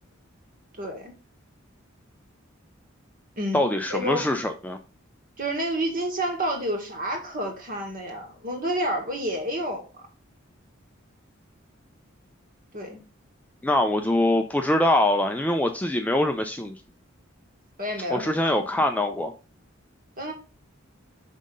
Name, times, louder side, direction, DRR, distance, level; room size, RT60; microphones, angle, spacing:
voice 1, 0.8-1.1 3.3-4.2 5.4-9.9 12.7-13.0 17.8-18.8 20.2-20.3, equal, 45° right, 3 dB, 1.7 m, -30 dB
voice 2, 3.5-4.8 13.6-16.7 18.1-19.3, left 1 dB, 10° left, 5 dB, 0.4 m, -23 dB
5.6 x 3.7 x 5.2 m, 0.33 s
head